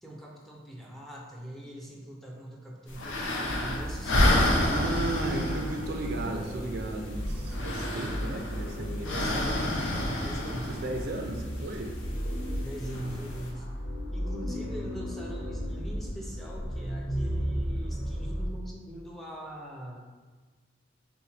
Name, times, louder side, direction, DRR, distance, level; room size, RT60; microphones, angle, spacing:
voice 1, 0.0-4.5 6.2-6.4 9.0-11.0 12.6-13.7 14.1-20.0, right 1 dB, ahead, -2 dB, 0.5 m, -42 dB
sound 1, 2.9-13.5, left 1 dB, 85° left, 0.7 m, -30 dB
sound 2, 3.4-18.5, equal, 60° left, 1.1 m, -35 dB
voice 2, 4.6-9.2 10.4-12.0, right 2 dB, 55° right, 3 dB, 0.4 m, -35 dB
5.4 x 2.1 x 3.2 m, 1.4 s
head